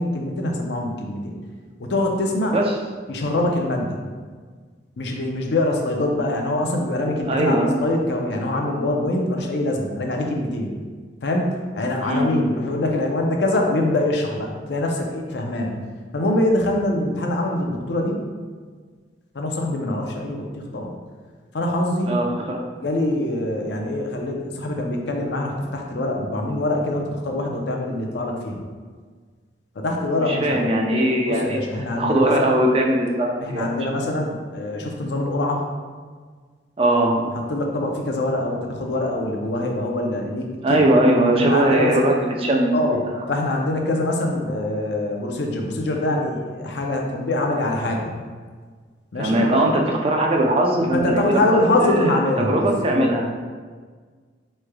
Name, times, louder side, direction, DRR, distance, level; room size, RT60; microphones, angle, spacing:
voice 1, 0.0-1.4 1.8-2.6 3.1-4.0 5.0-10.7 11.2-15.7 16.1-18.2 19.3-20.9 21.5-22.2 22.8-28.6 29.8-30.6 31.3-32.5 33.4-35.6 37.3-40.8 41.3-42.0 42.7-43.0 43.3-48.1 49.1-49.4 50.9-53.1, left 1 dB, 70° left, 1 dB, 0.5 m, -24 dB
voice 2, 7.3-7.8 12.0-12.3 22.1-22.6 30.3-33.7 36.8-37.4 40.6-43.0 49.2-51.4 51.8-53.3, right 1 dB, 30° right, 0 dB, 0.4 m, -20 dB
4.7 x 3.2 x 2.2 m, 1.5 s
head